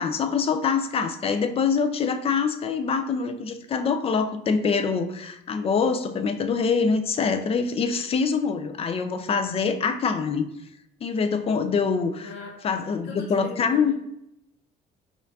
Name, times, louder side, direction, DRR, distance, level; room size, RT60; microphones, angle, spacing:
voice 1, 0.0-10.5 11.0-12.3 12.6-13.9, left 5 dB, 35° left, 8 dB, 0.4 m, -24 dB
voice 2, 12.2-13.9, left 4 dB, 75° left, -1 dB, 0.7 m, -40 dB
4.3 x 2.4 x 2.6 m, 0.80 s
cardioid pair, 110°, 17 cm